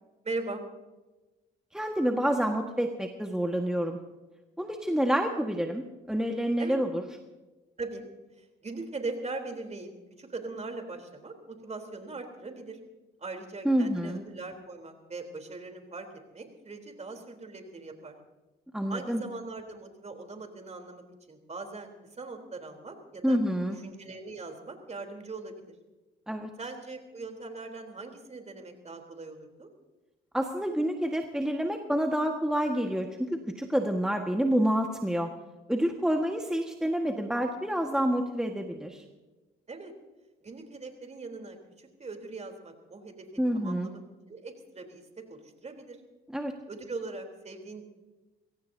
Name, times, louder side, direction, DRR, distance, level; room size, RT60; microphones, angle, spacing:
voice 1, 0.2-0.6 6.6-6.8 7.8-8.0 8.4-9.9 10.2-12.8 13.2-16.1 16.3-18.2 18.9-21.9 22.2-23.4 23.7-25.6 26.6-29.7 39.7-39.9 40.4-43.3 43.5-44.0 44.3-45.0 45.3-46.0 46.7-47.8, right 3 dB, 35° right, 5 dB, 3.7 m, -40 dB
voice 2, 1.7-4.0 4.6-7.0 13.6-14.2 18.7-19.2 23.2-23.8 26.3-26.5 30.3-35.3 35.7-39.0 43.4-43.9 46.3-46.5, equal, 5° right, 3 dB, 1.6 m, -28 dB
23.5 x 17.0 x 2.8 m, 1.1 s
supercardioid pair, 70°, 20 cm